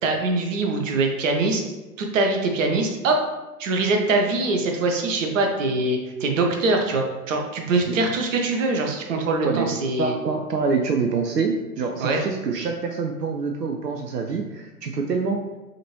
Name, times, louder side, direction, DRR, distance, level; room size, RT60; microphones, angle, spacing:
voice 1, 0.0-1.6 2.0-3.2 3.6-10.2 12.0-12.2, right 3 dB, 55° right, 2 dB, 0.9 m, -23 dB
voice 2, 10.0-15.4, right 4 dB, 85° right, 3 dB, 0.5 m, -26 dB
5.1 x 2.7 x 3.0 m, 1.1 s
figure-of-eight pair, 100°, 47 cm